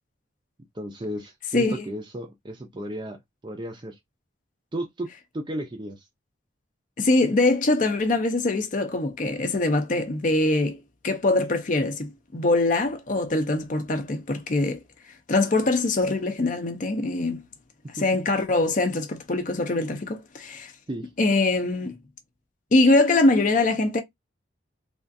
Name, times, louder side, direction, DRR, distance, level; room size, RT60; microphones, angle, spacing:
voice 1, 0.7-3.2 3.4-4.0 4.7-6.0 18.0-18.1 20.9-21.1, right 1 dB, 25° right, 0.5 m, -34 dB
voice 2, 7.0-10.8 11.0-14.8 15.3-17.4 18.0-20.7 21.2-22.0 22.7-24.0, left 2 dB, 40° left, 0.5 m, -23 dB
3.4 x 2.4 x 2.5 m
head